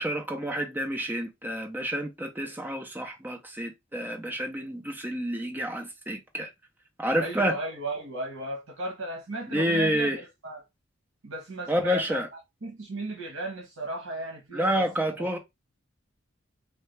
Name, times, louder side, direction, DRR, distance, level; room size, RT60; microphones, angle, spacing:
voice 1, 0.0-6.5 7.0-7.6 9.5-10.2 11.7-12.3 14.5-15.4, equal, 10° right, 0.6 m, -29 dB
voice 2, 7.2-10.6 11.2-12.2 12.6-15.3, right 2 dB, 90° right, 1.0 m, -35 dB
3.2 x 2.3 x 3.2 m
head